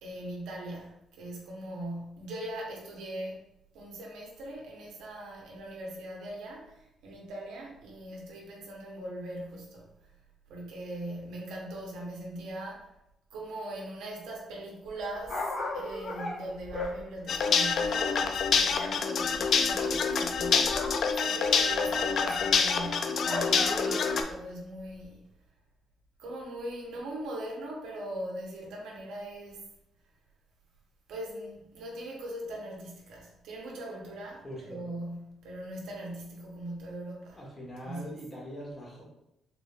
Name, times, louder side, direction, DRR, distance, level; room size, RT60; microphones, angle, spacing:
voice 1, 0.0-3.4 3.7-9.9 10.5-12.9 13.3-25.2 26.2-29.7 31.1-37.5 37.8-38.2, right 1 dB, 90° right, -2 dB, 0.9 m, -40 dB
Dog, 14.9-19.0 19.2-21.1 21.4-24.4 25.0-25.1, left 2 dB, 45° left, 1.0 m, -37 dB
sound 1, 17.3-24.2, left 5 dB, 60° left, 0.3 m, -27 dB
voice 2, 34.4-34.9 37.3-39.0, equal, 20° left, -3 dB, 1.3 m, -42 dB
3.7 x 3.1 x 2.4 m, 0.84 s
cardioid pair, 90°, 0 cm